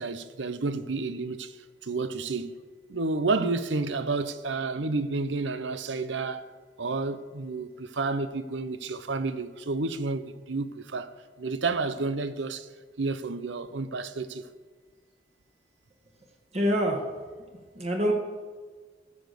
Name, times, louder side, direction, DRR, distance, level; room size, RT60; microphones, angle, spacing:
voice 1, 0.0-1.5 1.8-2.5 2.9-12.7 13.0-14.4, right 3 dB, 80° right, 0.7 m, -30 dB
voice 2, 16.5-17.0 17.7-18.1, equal, 35° right, 1.7 m, -25 dB
14.5 x 6.1 x 6.8 m
head